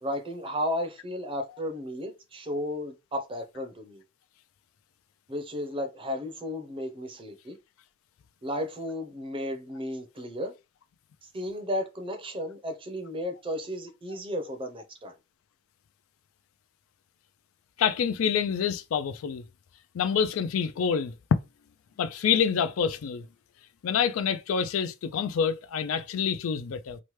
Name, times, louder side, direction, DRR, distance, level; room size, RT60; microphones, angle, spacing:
voice 1, 0.0-4.0 5.3-7.6 8.4-10.5 11.2-15.1, equal, 25° right, 0.6 m, -34 dB
voice 2, 17.8-19.4 19.9-21.1 22.0-23.3 23.8-27.0, left 7 dB, 75° left, 0.4 m, -27 dB
2.9 x 2.1 x 3.1 m
head